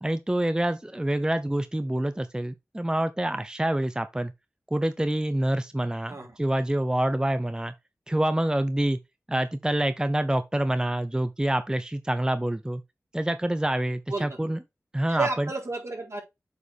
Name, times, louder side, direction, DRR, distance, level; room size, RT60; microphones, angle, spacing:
voice 1, 0.0-4.3 4.7-7.7 8.1-9.0 9.3-12.8 13.1-14.6 14.9-15.5, right 1 dB, 15° right, 0.7 m, -26 dB
voice 2, 15.1-16.2, right 3 dB, 65° right, 3.8 m, -31 dB
8.0 x 5.1 x 3.5 m
cardioid pair, 40°, 5 cm